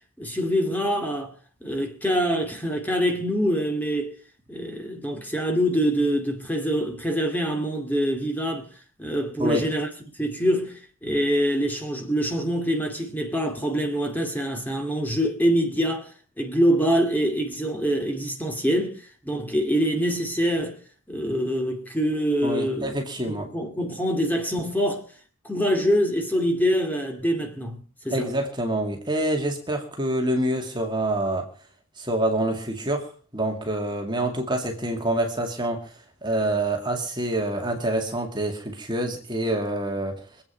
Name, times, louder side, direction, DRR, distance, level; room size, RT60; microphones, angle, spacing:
voice 1, 0.2-1.3 1.6-4.1 4.5-8.7 9.0-9.9 10.1-16.1 16.4-20.8 21.1-22.9 23.3-25.0 25.4-28.3, equal, 10° left, 2.4 m, -25 dB
voice 2, 22.4-23.5 28.1-31.5 32.0-35.9 36.2-40.4, right 1 dB, 20° right, 2.2 m, -26 dB
24.5 x 8.7 x 5.8 m
head